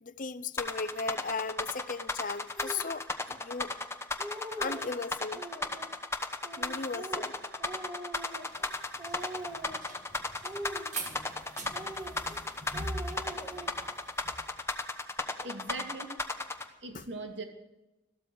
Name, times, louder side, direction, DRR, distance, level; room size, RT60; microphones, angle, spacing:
voice 1, 0.0-3.7 4.6-5.4 6.6-7.3 16.9-17.0, left 4 dB, 45° left, 15 dB, 0.7 m, -37 dB
sound 1, 0.6-16.6, left 3 dB, 15° left, 1.0 m, -34 dB
Speech, 2.6-2.9 3.6-3.7 4.0-4.9 5.3-5.9 6.4-8.7 9.0-9.9 10.4-11.4 11.7-12.4 12.7-13.9, right 1 dB, 20° right, 2.2 m, -43 dB
sound 2, 8.4-14.5, right 2 dB, 45° right, 2.6 m, -42 dB
voice 2, 15.4-16.1 16.8-17.4, right 2 dB, 80° right, 4 dB, 2.6 m, -40 dB
14.5 x 13.0 x 7.0 m, 1.0 s
head